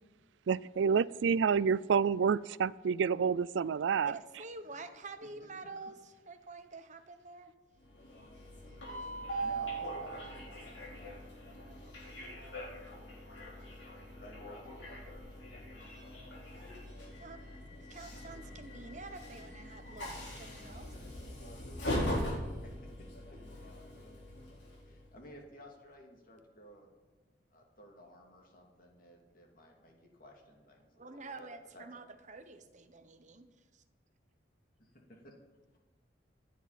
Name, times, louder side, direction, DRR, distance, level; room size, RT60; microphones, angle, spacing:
voice 1, 0.5-4.2, right 6 dB, 85° right, 21 dB, 0.4 m, -28 dB
voice 2, 4.0-7.5 17.2-17.4 17.9-21.2 31.0-33.8, right 3 dB, 40° right, 8 dB, 1.1 m, -48 dB
Train, 7.8-25.1, equal, 75° left, 4.2 m, -41 dB
voice 3, 9.4-13.2 14.2-15.9 16.5-16.7 18.1-18.2 22.6-23.1 23.5-24.1 24.8-26.9 27.2-31.5 31.7-32.0 34.8-35.3, left 1 dB, 50° left, 1 dB, 2.6 m, -57 dB
25.5 x 9.3 x 4.2 m, 1.2 s
head